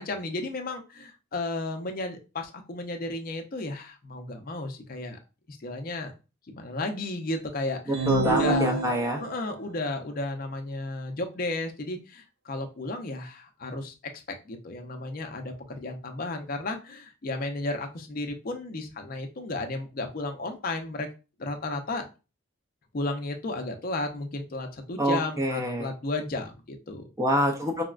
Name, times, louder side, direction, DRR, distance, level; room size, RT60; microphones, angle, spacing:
voice 1, 0.0-5.2 5.5-6.1 6.5-8.9 9.2-13.9 14.3-21.1 21.4-22.0 22.9-27.1, left 2 dB, 40° left, 5 dB, 0.5 m, -33 dB
sound 1, 7.9-9.5, right 3 dB, 90° right, 0.4 m, -28 dB
voice 2, 8.1-9.2 25.0-25.9 27.2-27.8, equal, 15° right, 2 dB, 0.5 m, -26 dB
4.1 x 2.1 x 2.4 m, 0.30 s
head